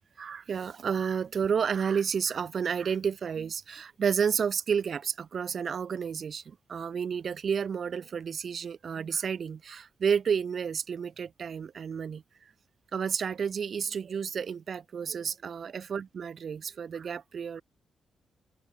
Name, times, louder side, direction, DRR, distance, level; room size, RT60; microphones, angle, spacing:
voice 1, 0.2-12.2 12.9-17.6, right 7 dB, 55° right, 6.0 m, -31 dB
open air
cardioid pair, 90°, 0 cm